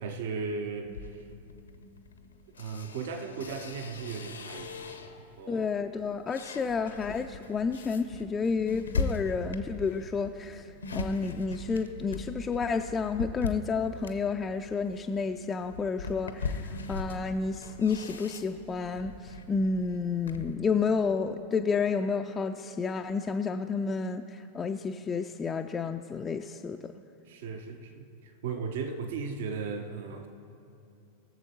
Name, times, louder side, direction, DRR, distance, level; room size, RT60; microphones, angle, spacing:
voice 1, 0.0-0.9 2.6-5.0 5.4-5.6 27.3-30.3, right 5 dB, 55° right, 7 dB, 0.8 m, -36 dB
sound 1, 0.8-5.4 5.8-20.5, left 4 dB, 75° left, 0.7 m, -39 dB
voice 2, 5.5-10.7 10.9-26.9, left 5 dB, 20° left, 4 dB, 0.3 m, -30 dB
20.5 x 7.2 x 2.8 m, 2.6 s
figure-of-eight pair, 90°, 0 cm